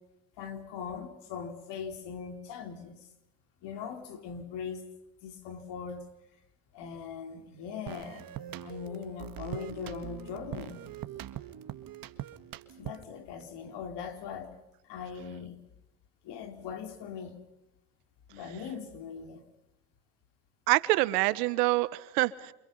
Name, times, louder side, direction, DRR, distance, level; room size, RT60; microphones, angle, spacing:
voice 1, 0.4-3.0 3.6-4.9 5.2-6.0 6.7-8.3 8.6-10.8 12.8-14.6 14.9-15.6 16.2-17.4 18.3-19.4, left 6 dB, 65° left, 4.3 m, -40 dB
sound 1, 7.9-13.2, right 12 dB, 50° right, 1.8 m, -42 dB
voice 2, 20.7-22.5, right 20 dB, 85° right, 1.4 m, -26 dB
28.5 x 28.5 x 5.6 m
supercardioid pair, 95°, 46 cm